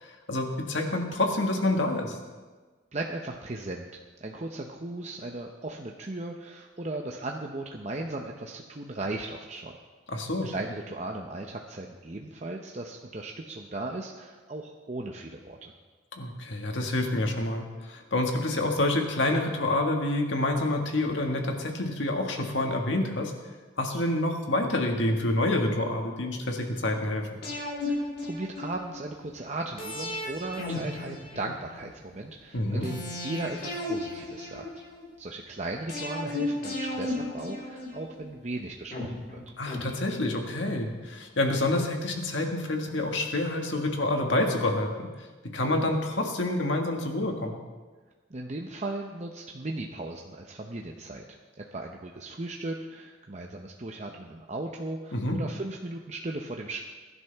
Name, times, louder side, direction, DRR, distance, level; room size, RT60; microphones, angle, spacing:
voice 1, 0.0-2.2 10.1-10.5 16.2-23.3 23.8-27.4 32.5-32.9 39.6-45.1 45.5-47.6 55.1-55.4, left 1 dB, 70° left, 2 dB, 1.8 m, -28 dB
voice 2, 2.9-3.9 4.2-9.7 10.4-15.7 27.8-34.6 35.2-39.4 48.3-51.2 51.6-56.8, right 2 dB, 35° right, 1 dB, 0.7 m, -37 dB
sound 1, 27.4-29.0 29.8-31.9 32.8-35.0 35.9-38.3 38.9-40.6 40.9-41.0, left 2 dB, 50° left, 4.5 m, -35 dB
21.5 x 11.0 x 3.5 m, 1.4 s
head